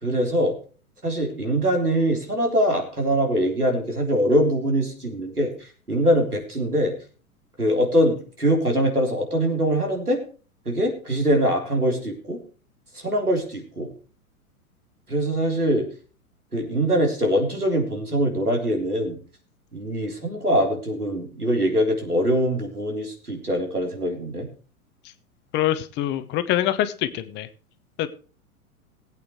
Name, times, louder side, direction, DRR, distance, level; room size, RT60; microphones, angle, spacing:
voice 1, 0.0-0.6 1.0-6.9 7.6-10.2 10.7-12.4 12.9-13.9 15.1-15.9 16.5-19.2 19.7-24.5, equal, 90° right, 3 dB, 3.7 m, -23 dB
voice 2, 25.5-27.5 28.0-28.1, left 12 dB, 25° left, 11 dB, 0.9 m, -24 dB
20.5 x 8.5 x 3.1 m, 0.38 s
figure-of-eight pair, 100°, 44 cm